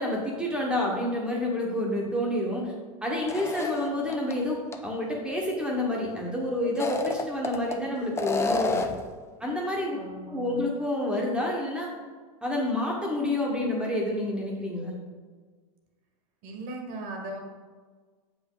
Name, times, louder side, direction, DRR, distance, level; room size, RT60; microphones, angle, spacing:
voice 1, 0.0-2.7 3.0-8.8 9.4-10.0 10.3-11.9 12.4-14.9, left 1 dB, 5° right, -2 dB, 1.2 m, -28 dB
sound 1, 3.3-4.3 4.7-4.8 6.6-7.8 8.2-9.1, left 3 dB, 15° left, 0.5 m, -29 dB
voice 2, 9.9-10.6 16.4-17.4, right 1 dB, 50° right, 2 dB, 1.5 m, -38 dB
7.3 x 5.2 x 3.9 m, 1.5 s
hypercardioid pair, 120°, 19 cm